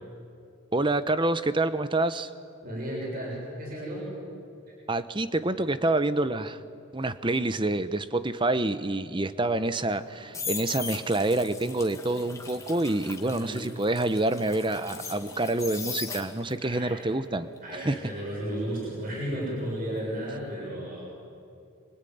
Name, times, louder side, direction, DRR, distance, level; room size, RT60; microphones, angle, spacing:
voice 1, 0.7-2.3 4.9-6.6 6.9-17.5 17.8-18.0, right 2 dB, 20° right, 13 dB, 0.9 m, -27 dB
voice 2, 2.6-4.1 4.7-4.8 13.2-13.6 16.6-16.9 17.6-21.2, right 1 dB, 40° right, -4 dB, 7.1 m, -34 dB
sound 1, 9.9-16.7 17.0-19.9 20.2-20.5, left 5 dB, 15° left, 2.1 m, -39 dB
26.5 x 24.0 x 9.4 m, 2.5 s
head